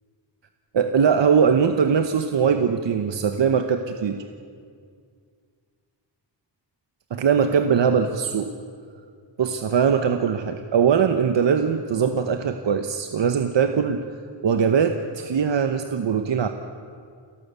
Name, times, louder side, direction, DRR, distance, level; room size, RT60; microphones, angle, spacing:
voice 1, 0.7-4.2 7.1-8.5 9.4-14.0 14.4-16.5, right 6 dB, 75° right, 7 dB, 1.0 m, -21 dB
29.5 x 12.5 x 8.3 m, 2.2 s
wide cardioid pair, 120°, 44 cm